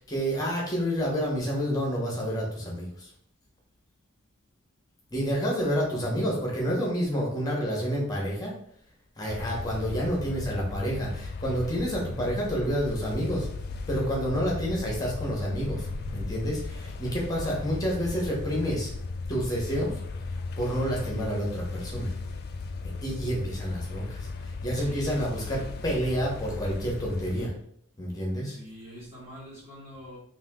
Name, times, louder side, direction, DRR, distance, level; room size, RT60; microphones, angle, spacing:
voice 1, 0.0-3.1 5.1-8.5 9.2-13.5 13.9-15.9 16.1-18.9 19.3-19.9 20.6-22.1 23.0-24.3 24.6-27.5 28.0-28.5, equal, 15° left, -2 dB, 1.1 m, -29 dB
sound 1, 9.3-27.5, left 3 dB, 45° left, 0.3 m, -36 dB
voice 2, 24.7-25.8 28.4-30.2, equal, 25° right, -10 dB, 1.4 m, -45 dB
3.6 x 2.7 x 3.6 m, 0.65 s
head